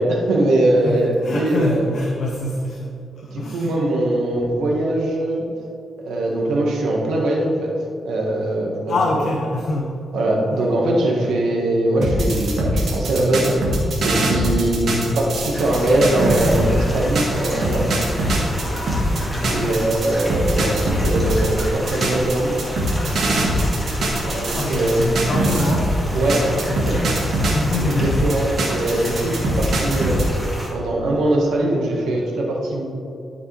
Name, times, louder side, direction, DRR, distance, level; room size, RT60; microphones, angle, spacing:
voice 1, 0.0-1.8 3.3-5.5 6.0-7.7 8.0-8.9 10.1-13.6 14.0-17.9 19.5-22.5 24.2-25.0 26.1-26.5 26.8-27.0 27.9-30.3 30.7-32.9, right 1 dB, 85° right, -2 dB, 1.6 m, -21 dB
voice 2, 0.8-3.7 8.9-10.0 10.5-10.6 11.4-11.5 14.9-15.3 19.3-19.9 20.5-21.2 24.1-29.7, left 1 dB, 50° left, -2 dB, 1.0 m, -27 dB
sound 1, 12.0-16.8 17.2-25.9 26.3-30.3, right 1 dB, 65° right, 1.7 m, -22 dB
sound 2, 15.5-30.7, equal, ahead, 2.0 m, -30 dB
12.5 x 5.2 x 3.4 m, 2.7 s
cardioid pair, 80°, 0 cm